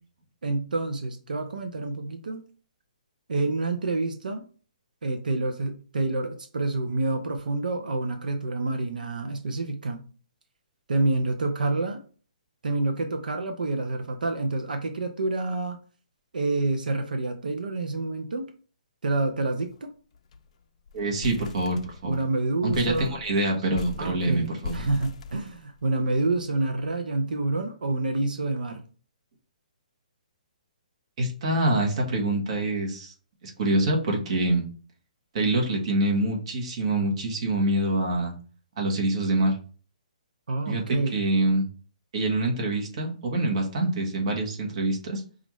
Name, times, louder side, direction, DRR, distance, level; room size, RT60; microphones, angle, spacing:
voice 1, 0.4-2.4 3.3-4.4 5.0-10.0 10.9-12.0 12.6-15.8 16.3-18.5 19.0-19.9 22.0-23.2 24.0-28.8 40.5-41.2, right 2 dB, 85° right, 6 dB, 0.6 m, -28 dB
sound 1, 19.2-19.4 19.7-19.8 20.1-20.5 20.9-22.3 22.7-26.0, left 5 dB, 50° left, 0.4 m, -40 dB
voice 2, 20.9-22.2 22.6-24.8 31.2-33.1 33.4-34.6 35.3-38.3 38.8-39.6 40.7-41.7 42.1-45.2, right 2 dB, 45° right, 0 dB, 1.2 m, -25 dB
5.1 x 2.5 x 3.1 m, 0.39 s
hypercardioid pair, 155°, 4 cm